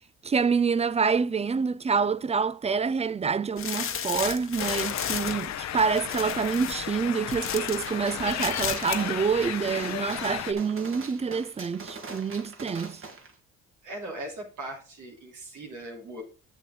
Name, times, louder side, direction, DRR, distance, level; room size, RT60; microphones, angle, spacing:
voice 1, 0.2-13.0, right 5 dB, 20° right, 0.4 m, -27 dB
sound 1, 3.6-7.9 8.2-9.0 9.3-9.4, left 7 dB, 45° left, 1.0 m, -34 dB
sound 2, 4.6-10.5, left 11 dB, 65° left, 0.7 m, -34 dB
Gunshot gunfire, 7.9-13.3, right 3 dB, 45° right, 1.8 m, -43 dB
voice 2, 13.8-16.2, right 1 dB, 85° right, 3.1 m, -39 dB
7.6 x 7.2 x 3.8 m
cardioid pair, 90°, 30 cm